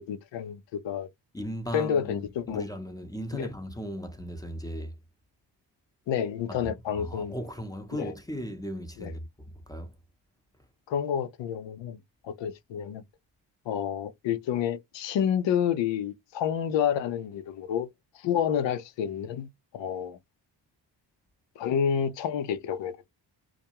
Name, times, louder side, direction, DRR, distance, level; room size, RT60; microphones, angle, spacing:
voice 1, 0.1-1.1 1.7-2.7 3.3-3.5 6.1-7.3 7.9-8.1 9.0-9.1 10.9-12.0 12.2-13.0 13.7-17.9 18.1-20.2 21.6-23.1, left 8 dB, 80° left, 0.6 m, -29 dB
voice 2, 1.3-4.9 6.6-9.9, equal, 10° left, 0.6 m, -37 dB
2.3 x 2.1 x 2.8 m
cardioid pair, 80°, 44 cm